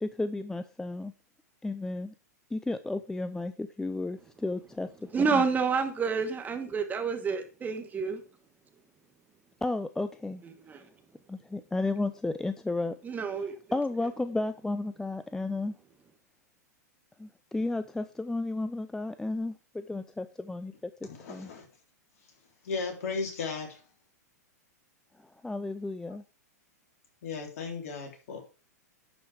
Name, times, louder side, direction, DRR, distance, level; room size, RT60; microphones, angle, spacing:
voice 1, 0.0-1.1 1.6-2.1 2.5-4.9 5.2-5.4 9.6-10.4 11.3-13.0 13.7-15.7 17.2-20.9 21.3-21.5 25.4-26.2, left 2 dB, 5° left, 0.5 m, -33 dB
voice 2, 5.1-8.2 10.7-10.8 13.0-13.6, right 5 dB, 20° right, 1.5 m, -29 dB
voice 3, 21.0-21.7 22.6-23.8 27.2-28.4, left 4 dB, 55° left, 3.5 m, -35 dB
11.0 x 5.5 x 4.8 m
hypercardioid pair, 105°, 9 cm